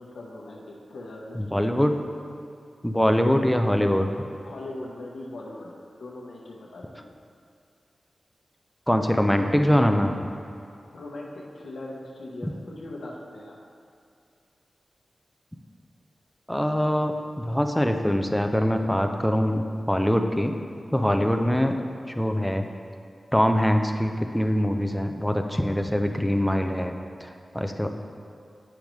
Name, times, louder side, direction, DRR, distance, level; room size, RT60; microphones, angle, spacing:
voice 1, 0.0-1.8 4.4-7.0 10.7-13.6, left 2 dB, 85° left, -3 dB, 0.8 m, -40 dB
voice 2, 1.4-1.9 2.8-4.1 8.9-10.2 12.4-12.5 16.5-20.5 20.9-21.8 22.1-22.7 23.3-26.9 27.2-27.9, equal, 5° left, 5 dB, 0.4 m, -23 dB
8.6 x 5.2 x 3.1 m, 2.4 s
wide cardioid pair, 115°, 0 cm